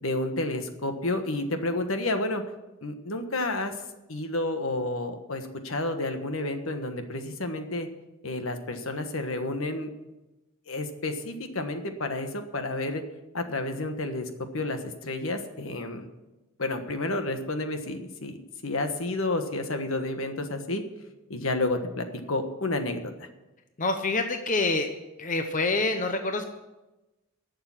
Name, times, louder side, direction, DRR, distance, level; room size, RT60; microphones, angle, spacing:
voice 1, 0.0-2.4 2.8-3.7 4.1-7.9 8.2-9.9 10.7-13.0 13.3-16.1 16.6-18.4 18.6-20.8 21.3-23.3, left 2 dB, 70° left, 6 dB, 1.4 m, -30 dB
voice 2, 23.8-24.9 25.2-26.4, left 3 dB, 35° left, 6 dB, 0.8 m, -26 dB
11.5 x 6.9 x 9.7 m, 1.0 s
head